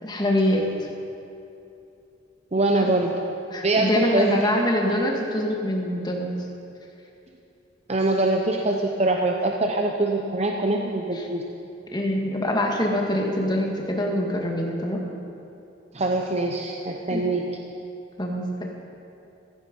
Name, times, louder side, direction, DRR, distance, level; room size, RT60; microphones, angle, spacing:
voice 1, 0.0-0.9 2.8-2.9 3.5-6.3 11.2-11.3 11.9-15.0 17.1-17.2 18.2-18.6, left 1 dB, 20° left, 0 dB, 1.9 m, -24 dB
voice 2, 2.5-3.1 3.6-4.5 7.9-11.4 15.9-17.5, right 2 dB, 35° right, 1 dB, 0.8 m, -23 dB
16.0 x 14.5 x 5.4 m, 2.8 s
head